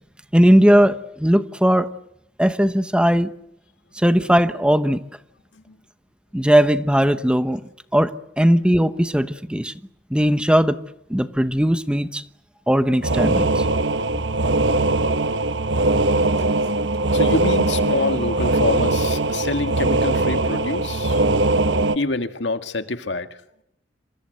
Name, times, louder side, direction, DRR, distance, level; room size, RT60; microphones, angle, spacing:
voice 1, 0.3-1.9 2.4-3.3 4.0-5.0 6.3-7.6 7.9-8.1 8.4-9.7 10.1-10.8 11.1-12.2 12.7-13.6, equal, 5° right, 1.0 m, -18 dB
sound 1, 13.0-22.0, right 2 dB, 75° right, 1.1 m, -20 dB
voice 2, 17.1-21.2 21.9-23.4, left 2 dB, 75° left, 2.0 m, -26 dB
28.0 x 26.5 x 8.1 m
head